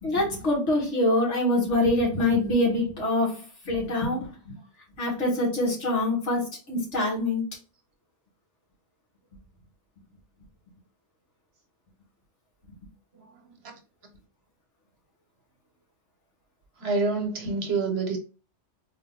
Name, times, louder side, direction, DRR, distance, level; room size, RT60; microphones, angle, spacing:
voice 1, 0.0-4.6 5.0-7.5 12.7-12.8, left 1 dB, 70° left, 2.0 m, -25 dB
voice 2, 13.1-13.7 16.8-18.2, right 4 dB, 60° right, 1.1 m, -28 dB
3.8 x 2.6 x 3.7 m
omnidirectional pair, 1.2 m